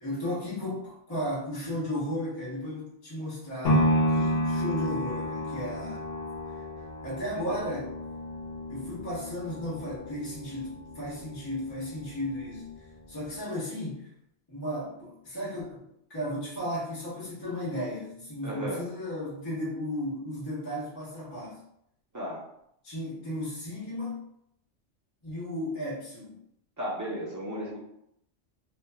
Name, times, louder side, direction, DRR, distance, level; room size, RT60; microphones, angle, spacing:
voice 1, 0.0-6.0 7.0-7.9 8.7-12.7 13.1-14.1 14.5-15.8 16.1-21.6 22.8-24.2 25.2-26.4, left 1 dB, 25° left, -8 dB, 0.8 m, -35 dB
sound 1, 3.6-11.8 12.2-12.3, equal, 60° left, 0.8 m, -30 dB
voice 2, 18.4-18.9 22.1-22.4 26.8-27.8, equal, 20° right, -4 dB, 0.5 m, -35 dB
2.9 x 2.3 x 2.2 m, 0.75 s
omnidirectional pair, 1.2 m